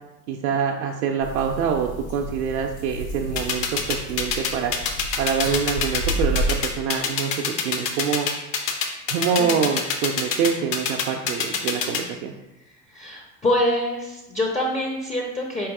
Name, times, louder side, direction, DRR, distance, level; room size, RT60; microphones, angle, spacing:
voice 1, 0.3-4.7 5.2-8.3 9.1-12.3, right 7 dB, 65° right, 2 dB, 0.5 m, -25 dB
sound 1, 1.2-6.5, right 1 dB, 90° left, 1.2 m, -31 dB
sound 2, 3.4-12.0, left 7 dB, 50° left, 0.8 m, -24 dB
voice 2, 12.9-15.7, left 1 dB, 15° left, -1 dB, 0.6 m, -25 dB
4.5 x 3.0 x 3.5 m, 0.95 s
figure-of-eight pair, 70°, 47 cm